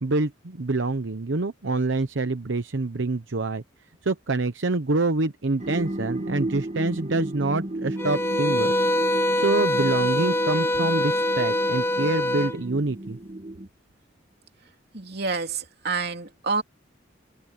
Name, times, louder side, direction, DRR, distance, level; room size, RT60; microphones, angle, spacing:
voice 1, 0.0-3.6 4.0-8.7 9.3-13.2, right 3 dB, 75° right, 0.9 m, -26 dB
sound 1, 5.6-13.7, right 1 dB, 35° right, 1.8 m, -34 dB
sound 2, 8.0-12.6, left 1 dB, 10° left, 1.2 m, -24 dB
voice 2, 14.9-16.6, right 4 dB, 55° right, 3.2 m, -28 dB
open air
head